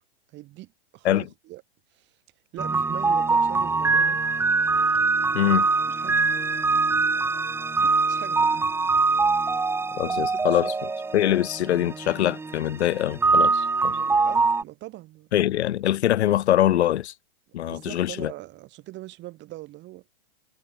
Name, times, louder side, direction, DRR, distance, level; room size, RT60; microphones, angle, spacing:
voice 1, 0.3-1.6 1.9-2.1 2.5-4.2 5.3-5.6 6.0-6.5 7.8-8.7 9.3-9.8 10.0-10.2 10.5-10.7 13.8-15.3 17.7-20.0, right 17 dB, 35° right, 3.9 m, -42 dB
sound 1, 2.6-14.6, right 4 dB, 5° right, 1.0 m, -23 dB
voice 2, 5.3-5.7 9.9-10.7 11.1-13.9 15.3-17.1 17.5-18.3, left 12 dB, 85° left, 0.6 m, -23 dB
hypercardioid pair, 125°, 32 cm